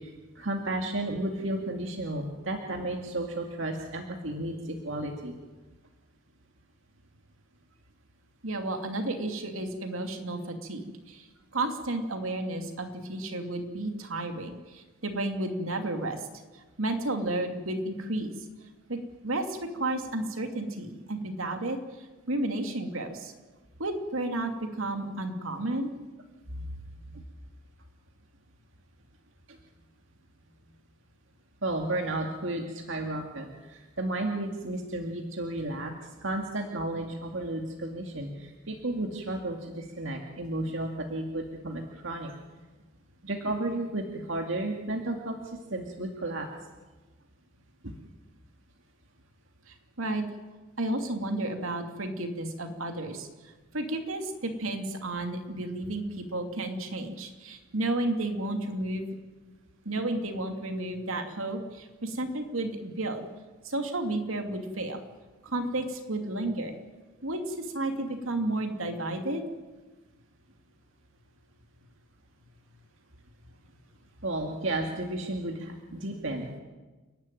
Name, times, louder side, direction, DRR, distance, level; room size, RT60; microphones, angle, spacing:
voice 1, 0.0-5.3 26.5-26.7 29.5-29.6 31.6-42.3 43.2-46.5 47.8-48.0 74.2-76.6, right 1 dB, 65° right, 2 dB, 2.2 m, -33 dB
voice 2, 8.4-11.3 11.5-16.2 16.8-18.3 18.9-19.0 19.2-21.8 22.3-23.3 23.8-24.5 24.8-25.9 49.7-50.2 50.8-53.3 53.7-59.1 59.8-63.2 63.6-65.0 65.4-66.8 67.2-69.4, right 2 dB, 80° right, 5 dB, 2.8 m, -32 dB
30.0 x 12.0 x 9.3 m, 1.2 s
head